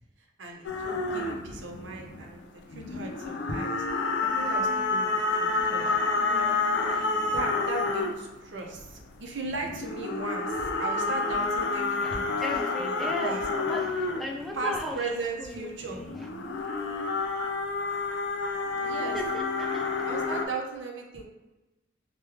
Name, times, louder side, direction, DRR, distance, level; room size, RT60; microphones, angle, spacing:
voice 1, 0.4-3.9 4.4-5.1 5.4-5.9 7.2-13.4 14.5-16.0 18.8-19.2 20.1-21.2, right 3 dB, 85° right, 1 dB, 0.6 m, -37 dB
sound 1, 0.6-2.4 2.7-8.4 9.1-14.8 15.8-20.5, left 3 dB, 75° left, 0.4 m, -29 dB
voice 2, 5.8-7.0 12.0-16.3 19.0-20.0, left 1 dB, ahead, 0 dB, 0.3 m, -38 dB
3.1 x 2.2 x 3.4 m, 1.1 s
head